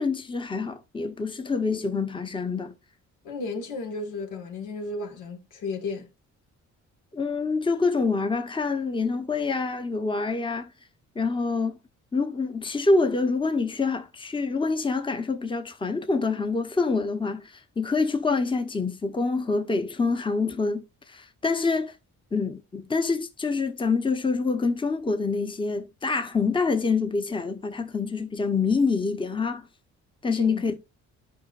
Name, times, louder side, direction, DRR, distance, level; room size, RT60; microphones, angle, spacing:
voice 1, 0.0-2.7 7.1-10.7 11.1-11.8 12.1-22.0 22.3-29.7 30.2-30.8, left 4 dB, 15° left, 0.9 m, -26 dB
voice 2, 3.2-6.1 30.3-30.6, left 3 dB, 85° left, 1.7 m, -34 dB
12.0 x 5.1 x 2.5 m
cardioid pair, 90°, 30 cm